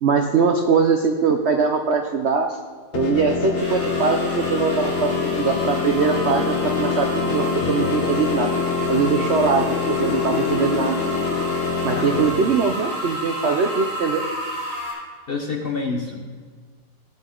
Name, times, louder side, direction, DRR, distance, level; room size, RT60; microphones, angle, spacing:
voice 1, 0.0-2.6 2.9-8.6 8.9-9.7 10.0-11.0 11.8-14.2, right 5 dB, 65° right, 4 dB, 0.6 m, -21 dB
sound 1, 2.9-12.3, left 5 dB, 65° left, 1.5 m, -25 dB
sound 2, 3.6-14.9, right 1 dB, 40° right, 4.6 m, -31 dB
Wind, 5.0-13.7, left 7 dB, 85° left, 1.7 m, -33 dB
voice 2, 15.3-16.4, left 4 dB, 40° left, 1 dB, 1.0 m, -28 dB
17.0 x 8.3 x 3.8 m, 1.5 s
omnidirectional pair, 2.0 m